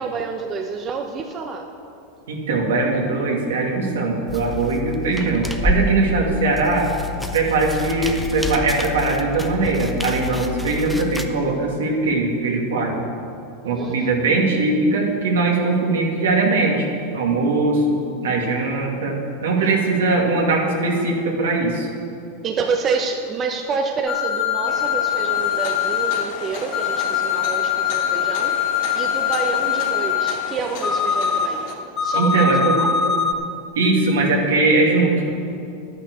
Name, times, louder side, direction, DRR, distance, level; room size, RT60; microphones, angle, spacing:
voice 1, 0.0-1.7 13.6-14.1 22.4-28.5 28.9-31.6 32.0-32.3 32.8-33.2, right 4 dB, 35° right, 3 dB, 1.0 m, -28 dB
voice 2, 2.3-6.9 7.3-13.0 13.6-16.9 17.1-19.2 19.4-21.9 32.1-32.8 33.7-35.3, right 3 dB, 80° right, -1 dB, 2.4 m, -20 dB
sound 1, 4.3-11.3, left 3 dB, ahead, 1.0 m, -28 dB
sound 2, 24.1-26.2 26.7-30.3 30.8-31.5 32.0-33.3, left 8 dB, 25° left, 1.7 m, -22 dB
sound 3, 24.7-31.8, left 5 dB, 65° left, 1.9 m, -34 dB
11.5 x 9.5 x 6.4 m, 2.6 s
hypercardioid pair, 100°, 0 cm